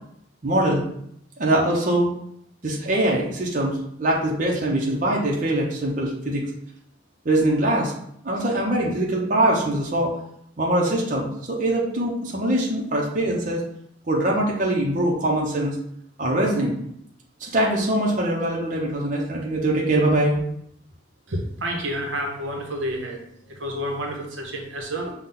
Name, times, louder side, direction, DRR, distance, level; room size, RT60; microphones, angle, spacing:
voice 1, 0.4-0.9 1.4-2.1 2.6-6.4 7.2-7.9 8.2-10.1 10.6-13.6 14.1-15.7 16.2-16.8 17.4-20.4, right 1 dB, 40° right, -2 dB, 0.8 m, -22 dB
voice 2, 21.3-25.1, equal, 80° right, 1 dB, 0.9 m, -30 dB
5.7 x 2.3 x 3.8 m, 0.72 s
head